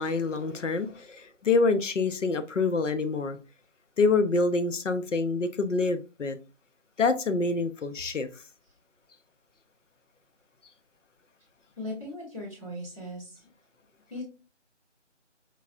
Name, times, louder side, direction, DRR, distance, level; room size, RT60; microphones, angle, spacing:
voice 1, 0.0-3.4 4.0-6.4 7.0-8.3, left 3 dB, 80° left, 0.7 m, -26 dB
voice 2, 11.8-13.4 14.1-14.2, left 1 dB, 25° left, 1.1 m, -38 dB
4.7 x 2.4 x 2.6 m
figure-of-eight pair, 180°, 37 cm